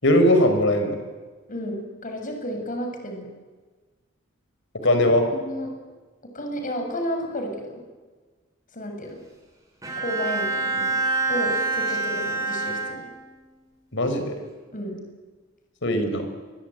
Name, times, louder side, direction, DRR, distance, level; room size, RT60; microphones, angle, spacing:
voice 1, 0.0-1.0 4.8-5.2 13.9-14.4 15.8-16.3, left 1 dB, 65° left, 7 dB, 5.3 m, -19 dB
voice 2, 1.5-3.3 4.8-4.9 5.3-5.7 6.3-7.8 8.7-9.2 10.0-11.0 11.3-13.0 14.7-15.0, equal, 40° left, 4 dB, 7.2 m, -32 dB
Bowed string instrument, 9.8-13.5, right 3 dB, 20° right, 7.8 m, -26 dB
27.0 x 23.0 x 9.3 m, 1.3 s
head